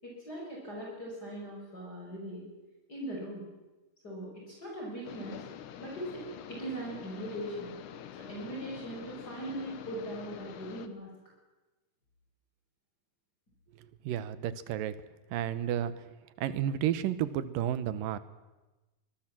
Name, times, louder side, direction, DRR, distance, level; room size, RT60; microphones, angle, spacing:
voice 1, 0.0-2.4 2.9-3.5 4.0-5.4 5.8-6.2 6.5-7.7 8.2-11.1, right 1 dB, 25° left, -3 dB, 6.4 m, -40 dB
sound 1, 5.0-10.9, left 9 dB, 70° left, 2.5 m, -46 dB
voice 2, 14.0-15.0 15.3-16.1 16.4-18.2, right 10 dB, 80° right, 14 dB, 2.7 m, -31 dB
25.0 x 20.5 x 7.5 m, 1.1 s
omnidirectional pair, 3.9 m